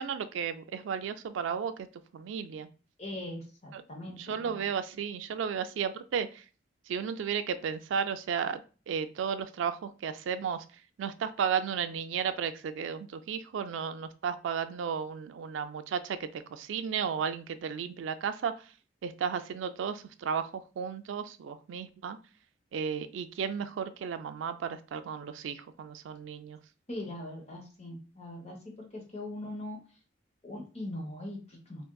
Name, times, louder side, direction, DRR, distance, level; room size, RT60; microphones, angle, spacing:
voice 1, 0.0-1.9 2.1-2.7 3.7-3.8 4.2-6.4 6.9-8.6 8.9-10.6 11.0-18.5 19.0-22.2 22.7-26.6, right 7 dB, 85° right, 10 dB, 0.3 m, -34 dB
voice 2, 3.0-4.7 26.9-29.8 30.4-31.9, left 1 dB, 35° left, 0 dB, 0.9 m, -41 dB
3.6 x 2.5 x 2.2 m, 0.36 s
head